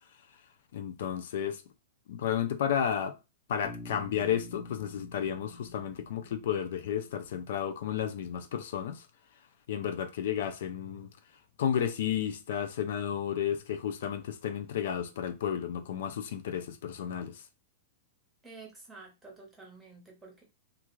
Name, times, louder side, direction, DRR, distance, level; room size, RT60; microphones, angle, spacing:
voice 1, 0.7-1.6 2.1-3.2 3.5-9.0 9.7-11.1 11.6-17.4, left 9 dB, 70° left, 0.4 m, -32 dB
Bass guitar, 3.6-7.7, left 2 dB, 25° left, 0.9 m, -48 dB
voice 2, 18.4-20.4, right 3 dB, 10° right, 0.9 m, -50 dB
2.4 x 2.3 x 3.0 m
supercardioid pair, 150°, 0 cm